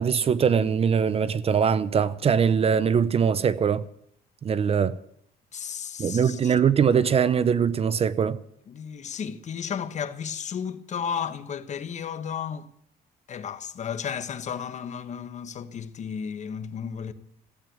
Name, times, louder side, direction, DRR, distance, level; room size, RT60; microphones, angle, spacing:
voice 1, 0.0-3.9 4.4-5.0 6.0-8.4, right 7 dB, 35° right, 0.6 m, -22 dB
voice 2, 5.5-6.5 8.7-12.7 13.3-17.1, left 7 dB, 45° left, 1.2 m, -33 dB
15.5 x 8.8 x 9.2 m
cardioid pair, 110°, 17 cm